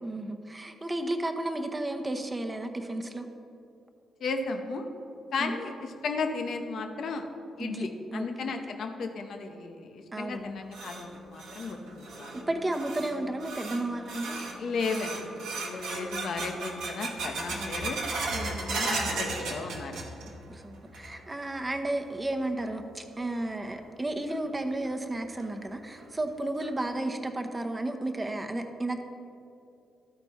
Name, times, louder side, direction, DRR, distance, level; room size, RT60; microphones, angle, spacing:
voice 1, 0.0-3.3 5.4-5.6 7.6-8.5 10.1-10.6 12.3-14.4 17.5-17.8 18.3-18.8 20.5-29.0, right 1 dB, 25° right, 6 dB, 0.8 m, -33 dB
voice 2, 4.2-4.9 5.3-7.2 7.6-12.3 14.6-15.3 15.6-18.0 18.4-20.0, left 4 dB, 65° left, 5 dB, 0.7 m, -34 dB
sound 1, 10.3-20.5 20.7-21.4 21.7-21.8 22.6-22.7 24.3-24.4 24.8-24.9 25.4-25.5 26.0-26.1 26.6-27.0, right 3 dB, 75° right, 0.9 m, -36 dB
12.5 x 4.4 x 4.3 m, 2.7 s
hypercardioid pair, 45°, 0 cm